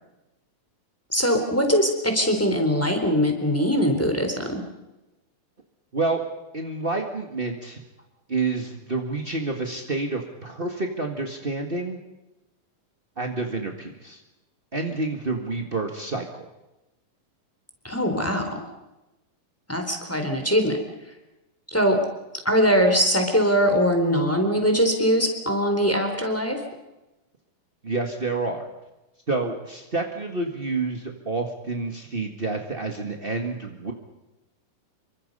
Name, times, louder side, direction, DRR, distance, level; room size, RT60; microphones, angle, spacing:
voice 1, 1.1-4.6 17.8-18.6 19.7-20.8 21.7-22.0 22.4-26.6, equal, 5° left, 4 dB, 3.6 m, -22 dB
voice 2, 6.5-7.8 8.3-12.0 13.2-14.2 14.7-16.5 27.8-28.7 29.3-33.9, right 3 dB, 35° right, 2 dB, 0.9 m, -28 dB
27.5 x 24.5 x 5.5 m, 0.99 s
omnidirectional pair, 4.2 m